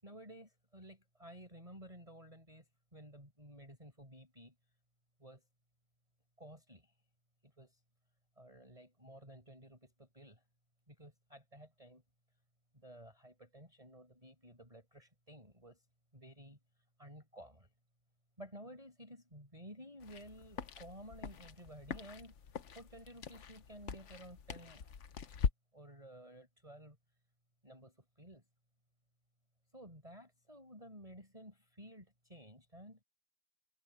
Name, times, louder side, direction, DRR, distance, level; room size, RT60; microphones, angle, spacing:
voice 1, 0.0-2.7 2.9-4.6 5.2-5.4 6.4-6.9 7.4-7.8 8.4-10.4 10.9-12.0 12.7-15.8 16.1-16.6 17.0-17.7 18.4-22.3 22.7-24.9 25.7-27.0 27.6-28.4 29.7-33.0, equal, 15° right, 5.5 m, -54 dB
sound 1, 20.0-25.5, left 7 dB, 50° left, 1.0 m, -42 dB
omnidirectional pair, 2.0 m